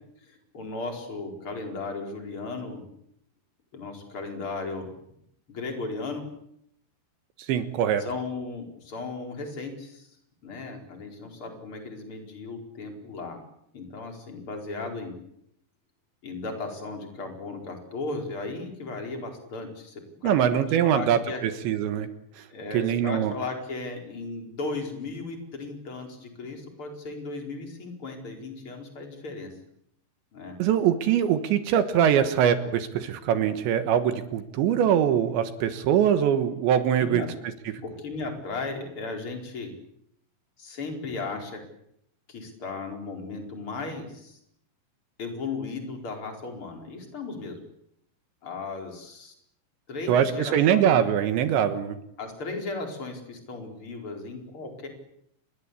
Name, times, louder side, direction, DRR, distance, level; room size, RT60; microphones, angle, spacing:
voice 1, 0.3-2.8 3.7-4.9 5.5-6.3 8.0-10.1 10.4-13.4 13.7-15.2 16.2-21.4 22.5-29.5 30.3-30.6 37.0-37.3 37.8-39.7 40.6-41.6 42.3-44.4 45.2-47.6 48.4-49.3 49.9-50.9 52.2-54.9, left 3 dB, 30° left, 3 dB, 5.1 m, -36 dB
voice 2, 7.5-8.1 20.2-22.1 22.4-22.5 22.7-23.3 30.6-37.3 50.1-52.0, right 9 dB, 75° right, 10 dB, 3.6 m, -23 dB
29.5 x 22.0 x 8.4 m, 0.74 s
omnidirectional pair, 5.3 m